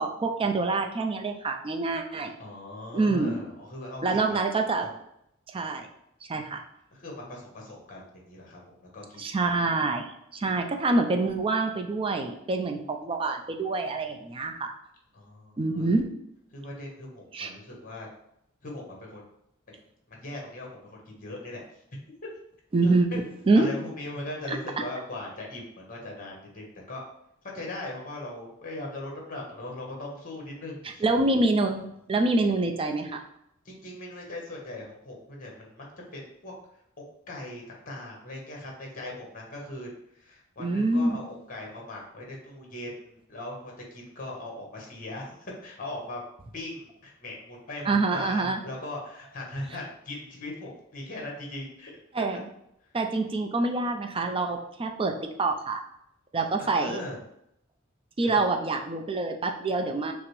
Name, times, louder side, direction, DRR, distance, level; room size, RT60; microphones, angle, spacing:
voice 1, 0.0-2.3 2.9-3.4 4.0-4.9 5.5-5.9 6.3-6.6 9.2-14.7 15.6-16.1 17.3-17.5 22.7-23.7 24.5-24.6 31.0-33.2 40.6-41.1 47.9-48.6 52.1-52.4 52.9-55.8 56.3-57.0 58.2-60.1, right 3 dB, 25° right, 4 dB, 0.4 m, -26 dB
voice 2, 2.4-4.4 4.8-4.9 7.0-9.2 15.1-15.8 16.5-18.1 18.6-19.2 20.1-21.6 22.8-23.2 23.5-27.0 27.5-31.0 33.6-35.9 36.1-36.6 37.0-39.9 40.1-46.2 46.5-51.9 56.6-57.2 58.2-58.5, left 1 dB, 40° left, -1 dB, 1.0 m, -39 dB
5.8 x 2.0 x 3.1 m, 0.77 s
head